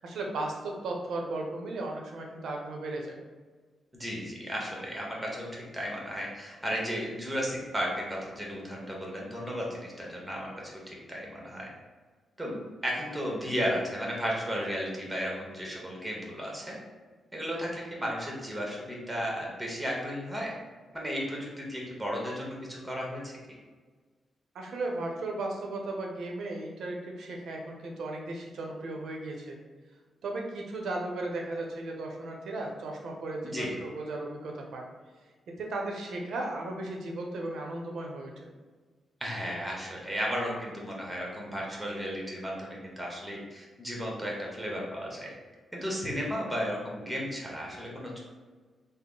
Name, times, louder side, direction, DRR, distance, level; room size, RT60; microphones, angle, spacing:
voice 1, 0.0-3.1 24.5-29.6 30.2-34.9 35.5-38.5, right 2 dB, 75° right, 1 dB, 0.7 m, -36 dB
voice 2, 3.9-10.5 10.9-11.7 12.4-16.7 17.3-20.5 20.9-23.4 33.4-33.7 39.2-45.3 45.7-48.2, equal, 10° right, -2 dB, 1.0 m, -34 dB
3.7 x 2.0 x 3.7 m, 1.4 s
cardioid pair, 95°, 0 cm